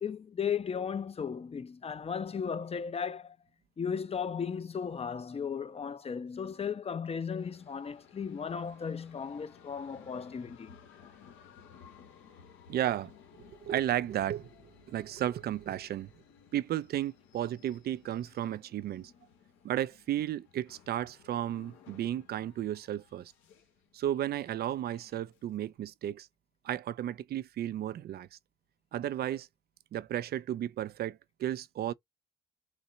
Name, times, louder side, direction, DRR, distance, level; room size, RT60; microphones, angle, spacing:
voice 1, 0.0-3.4 3.8-10.7, left 6 dB, 30° left, 0.6 m, -35 dB
sound 1, 7.4-25.8, left 7 dB, 90° left, 1.3 m, -58 dB
voice 2, 12.7-13.1 13.6-14.5 14.9-16.1 16.5-19.1 19.6-23.3 23.9-26.3 26.6-28.3 28.9-29.5 29.9-31.9, right 12 dB, 55° right, 0.4 m, -33 dB
4.0 x 2.1 x 3.8 m
cardioid pair, 90°, 20 cm